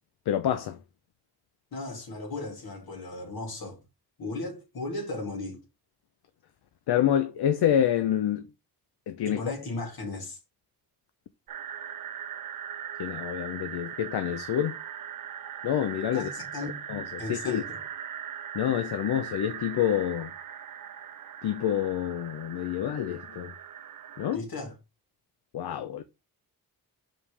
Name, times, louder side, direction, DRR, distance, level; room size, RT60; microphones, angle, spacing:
voice 1, 0.3-0.8 6.9-8.4 9.1-9.4 13.0-14.8 15.6-16.3 16.9-17.6 18.5-20.3 21.4-23.5 24.2-24.4 25.5-26.0, left 10 dB, 90° left, 0.7 m, -27 dB
voice 2, 1.7-3.8 4.2-5.6 9.2-10.4 16.1-16.8 17.2-17.8 24.3-24.8, left 2 dB, 70° left, 2.8 m, -36 dB
sound 1, 11.5-24.4, right 9 dB, 60° right, 0.6 m, -40 dB
5.5 x 5.1 x 3.3 m
cardioid pair, 70°, 38 cm